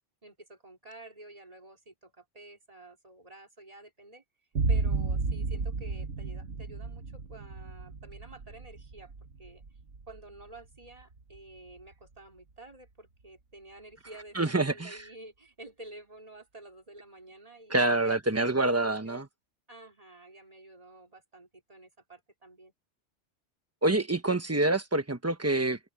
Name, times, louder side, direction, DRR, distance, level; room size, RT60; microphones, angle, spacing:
voice 1, 0.2-4.2 4.7-9.1 9.4-9.6 10.1-19.3 19.7-22.7, right 2 dB, 30° right, 3.4 m, -50 dB
sound 1, 4.6-11.9, right 4 dB, 75° right, 1.8 m, -33 dB
voice 2, 14.3-15.0 17.7-19.3 23.8-25.8, right 2 dB, 15° right, 1.1 m, -26 dB
open air
omnidirectional pair, 1.2 m